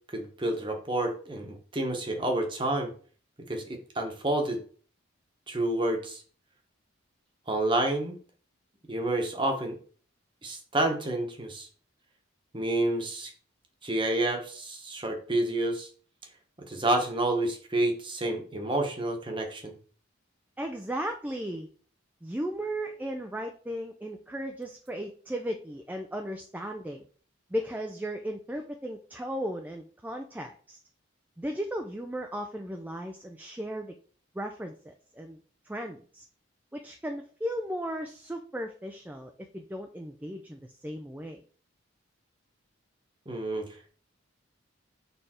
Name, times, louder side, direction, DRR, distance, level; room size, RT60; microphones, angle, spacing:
voice 1, 0.1-2.9 3.5-4.6 5.5-6.2 7.5-8.2 8.9-9.8 10.4-11.7 12.5-13.3 13.8-15.9 16.7-19.7 43.3-43.6, right 1 dB, 25° right, 3 dB, 1.0 m, -29 dB
voice 2, 20.6-21.7 22.2-27.0 27.5-30.8 31.4-34.0 34.3-35.4 35.6-36.3 36.7-41.4, equal, 10° right, 4 dB, 0.3 m, -36 dB
6.6 x 3.4 x 4.3 m, 0.44 s
head